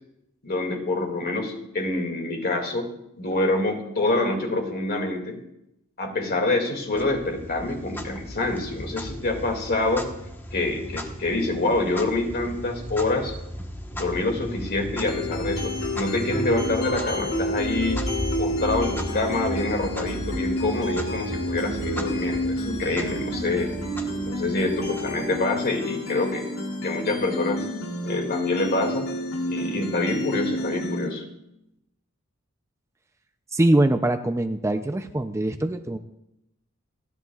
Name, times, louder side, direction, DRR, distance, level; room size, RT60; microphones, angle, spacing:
voice 1, 0.4-2.9 3.2-5.4 6.0-10.1 10.5-13.3 13.9-18.1 18.4-23.7 24.2-26.5 26.8-27.7 28.0-29.1 29.5-31.2, left 2 dB, 50° left, 2 dB, 2.3 m, -26 dB
Clock, 6.9-25.7, equal, 10° left, 1.2 m, -36 dB
sound 1, 15.1-31.1, equal, 85° left, 3.0 m, -30 dB
voice 2, 33.5-36.0, right 1 dB, 15° right, 7 dB, 0.5 m, -22 dB
29.5 x 10.5 x 2.4 m, 0.85 s
head